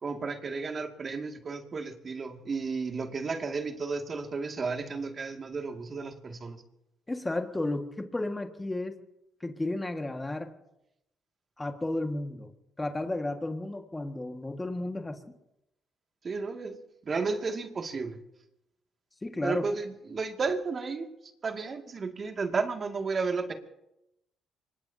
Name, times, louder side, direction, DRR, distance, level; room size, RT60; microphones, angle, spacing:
voice 1, 0.0-6.6 16.2-16.8 17.0-18.2 19.4-21.1 21.4-23.5, right 4 dB, 45° right, 4 dB, 2.3 m, -33 dB
voice 2, 7.1-9.0 9.4-10.5 11.6-12.5 12.8-15.2 19.2-19.7, left 2 dB, 15° left, 5 dB, 1.8 m, -33 dB
25.0 x 20.5 x 2.8 m, 0.86 s
supercardioid pair, 70°, 0 cm